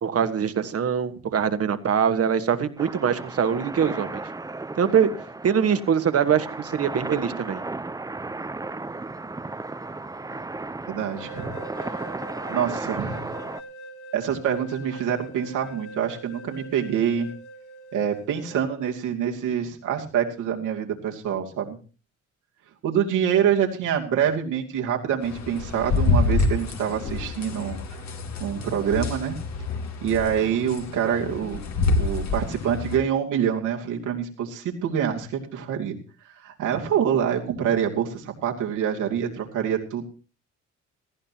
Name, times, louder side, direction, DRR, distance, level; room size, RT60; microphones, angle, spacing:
voice 1, 0.0-4.2 4.8-5.1 5.4-7.6, right 7 dB, 50° right, 10 dB, 1.4 m, -23 dB
sound 1, 2.8-13.6, right 3 dB, 10° right, 0.6 m, -35 dB
voice 2, 10.9-11.6 12.5-13.4 14.1-17.3 17.9-21.8 22.8-27.8 28.4-29.3 30.0-31.6 31.9-36.0 36.3-40.1, right 8 dB, 85° right, 1 dB, 2.6 m, -26 dB
sound 2, 11.0-18.6, right 1 dB, 90° left, 2.1 m, -43 dB
sound 3, 25.2-33.0, left 3 dB, 65° left, 2.1 m, -27 dB
18.5 x 14.5 x 2.9 m, 0.37 s
cardioid pair, 90°, 30 cm